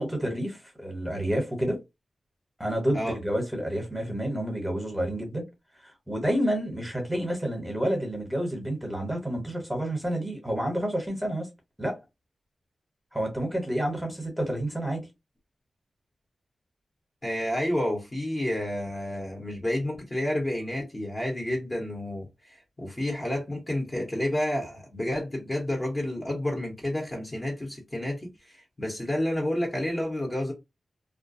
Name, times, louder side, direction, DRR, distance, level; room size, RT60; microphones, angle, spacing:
voice 1, 0.0-1.8 2.6-5.4 6.1-11.5 11.8-12.0 13.1-15.0, right 1 dB, 5° right, 1.0 m, -29 dB
voice 2, 17.2-30.5, left 1 dB, 20° left, 0.8 m, -30 dB
2.3 x 2.1 x 2.6 m
wide cardioid pair, 110°, 0 cm